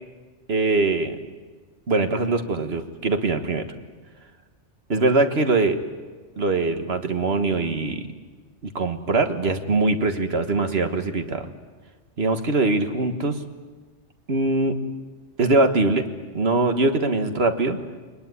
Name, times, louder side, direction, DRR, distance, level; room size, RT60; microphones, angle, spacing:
voice 1, 0.5-1.2 1.9-3.7 4.9-5.8 6.4-8.0 8.6-11.5 12.2-13.4 14.3-14.8 15.4-16.0 16.3-17.8, right 3 dB, 60° right, 7 dB, 1.8 m, -22 dB
22.5 x 20.5 x 9.6 m, 1.4 s
omnidirectional pair, 1.2 m